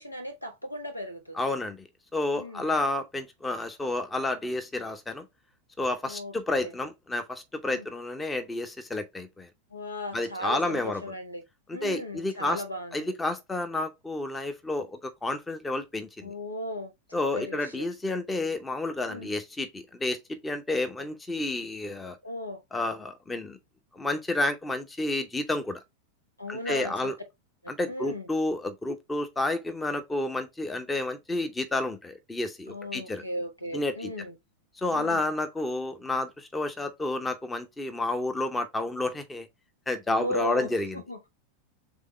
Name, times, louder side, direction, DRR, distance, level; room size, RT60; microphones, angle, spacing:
voice 1, 0.0-1.5 2.3-2.7 6.0-6.3 6.6-6.7 7.7-7.8 9.7-11.4 11.7-13.1 16.2-16.9 17.3-17.9 19.1-19.3 22.2-22.6 26.4-26.9 27.6-28.3 32.7-34.3 34.9-35.2 40.1-40.7 41.1-41.3, left 1 dB, 85° left, 1.0 m, -36 dB
voice 2, 1.3-1.8 2.1-5.2 5.8-9.5 10.1-11.0 11.7-12.6 12.9-16.3 17.1-22.2 22.7-23.6 23.9-25.8 26.5-27.1 27.7-33.2 33.7-34.1 34.8-39.5 39.9-41.0, left 2 dB, 10° left, 0.7 m, -30 dB
3.6 x 3.5 x 3.1 m
figure-of-eight pair, 90°, 0 cm